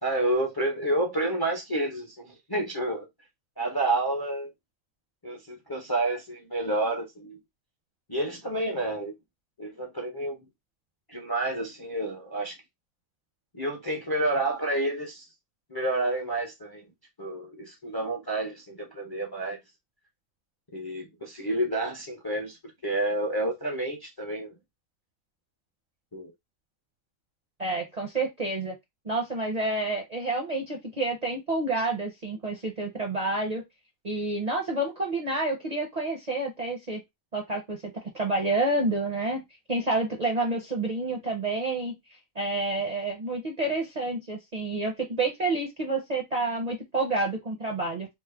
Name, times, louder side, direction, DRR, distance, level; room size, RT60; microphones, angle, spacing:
voice 1, 0.0-3.0 3.6-4.5 5.2-7.4 8.1-9.1 9.6-10.4 11.1-12.5 13.5-15.3 15.7-16.9 17.2-19.6 20.7-22.6 22.8-24.5 26.1-26.3, right 1 dB, 25° left, 0.5 m, -29 dB
voice 2, 27.6-28.7 29.0-33.6 34.0-37.0 37.3-37.8 38.1-39.4 39.7-41.9 42.4-48.1, right 2 dB, 45° right, 0.6 m, -29 dB
3.1 x 2.1 x 3.3 m
omnidirectional pair, 1.4 m